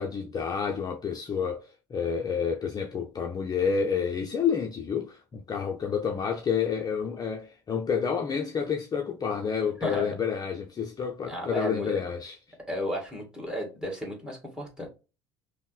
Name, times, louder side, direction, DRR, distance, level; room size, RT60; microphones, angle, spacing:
voice 1, 0.0-12.4, left 6 dB, 25° left, 0.5 m, -29 dB
voice 2, 9.8-10.2 11.3-11.9 12.7-14.9, equal, 5° right, 1.8 m, -33 dB
5.3 x 2.1 x 2.3 m
figure-of-eight pair, 60°, 14 cm